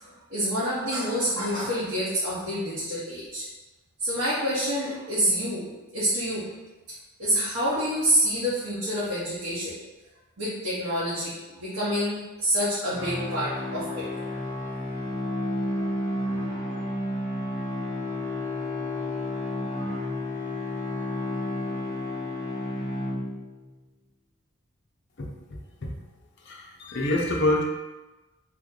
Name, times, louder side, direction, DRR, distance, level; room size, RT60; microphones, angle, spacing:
voice 1, 0.3-3.4 4.0-5.7 5.9-6.5 7.2-9.7 10.4-14.1, equal, 75° right, -10 dB, 1.0 m, -27 dB
sound 1, 12.9-23.7, left 1 dB, 50° right, 1.5 m, -31 dB
voice 2, 26.5-27.6, left 1 dB, 50° left, -1 dB, 0.6 m, -26 dB
2.9 x 2.6 x 3.7 m, 1.1 s
head